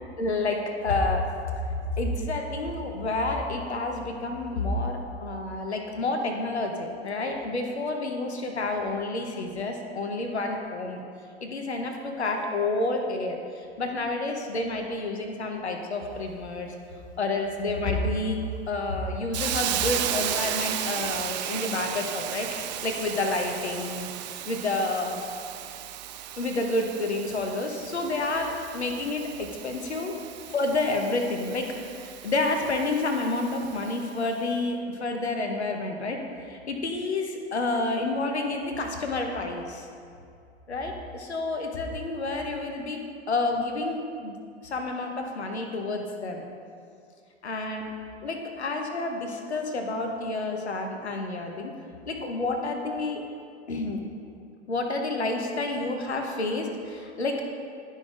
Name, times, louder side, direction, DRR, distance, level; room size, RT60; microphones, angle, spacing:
voice 1, 0.2-1.3 2.0-11.0 11.4-16.7 17.2-18.4 18.7-24.1 24.5-25.2 26.4-30.1 30.5-39.9 40.7-43.0 43.3-44.4 44.6-46.4 47.4-47.9 48.2-51.7 52.1-53.2 53.7-54.0 54.7-57.4, left 2 dB, 75° left, 3 dB, 1.0 m, -29 dB
Hiss, 19.3-34.1, right 11 dB, 40° right, 0.4 m, -35 dB
11.5 x 5.4 x 2.4 m, 2.4 s
figure-of-eight pair, 95°, 33 cm